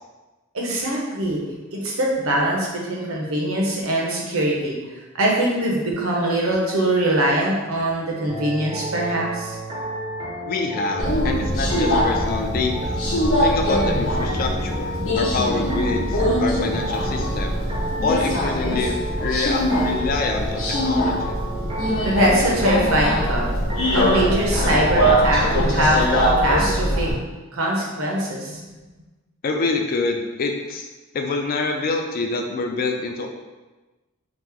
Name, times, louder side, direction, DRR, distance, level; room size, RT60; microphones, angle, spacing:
voice 1, 0.5-1.4 1.7-4.8 5.2-9.6 22.0-23.5 23.9-27.1 27.5-28.6, right 1 dB, 80° right, -2 dB, 0.7 m, -22 dB
sound 1, 8.3-25.2, right 1 dB, 25° right, 0.5 m, -32 dB
voice 2, 10.5-13.0 13.4-17.6 18.0-21.3 29.4-30.9 31.1-33.3, left 3 dB, 45° left, 3 dB, 0.3 m, -26 dB
Subway metro underground, 11.0-27.1, equal, 70° left, 0.7 m, -22 dB
2.9 x 2.0 x 3.6 m, 1.2 s
head